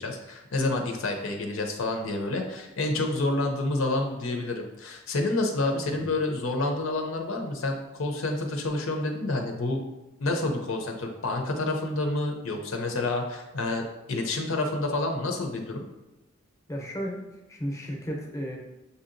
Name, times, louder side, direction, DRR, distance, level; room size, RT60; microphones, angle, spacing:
voice 1, 0.0-9.8 10.2-15.8, left 2 dB, 75° left, 3 dB, 0.6 m, -29 dB
voice 2, 16.7-17.2 17.5-18.6, equal, 15° left, -1 dB, 0.7 m, -34 dB
6.7 x 2.8 x 2.6 m, 1.0 s
head